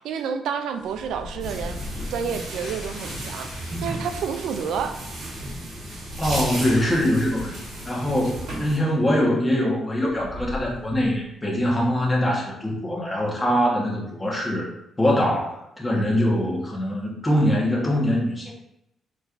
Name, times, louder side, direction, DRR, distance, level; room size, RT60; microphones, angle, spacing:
voice 1, 0.0-1.8 2.1-4.9, right 7 dB, 80° right, 7 dB, 0.4 m, -29 dB
sound 1, 0.8-9.0 9.2-9.3 9.9-11.3, left 2 dB, 75° left, 1.0 m, -40 dB
sound 2, 1.4-8.8, right 1 dB, 60° right, 1.2 m, -34 dB
voice 2, 6.2-7.6 7.8-14.7 15.0-18.5, equal, 15° left, -4 dB, 1.2 m, -23 dB
4.4 x 3.1 x 2.5 m, 0.84 s
cardioid pair, 90°, 0 cm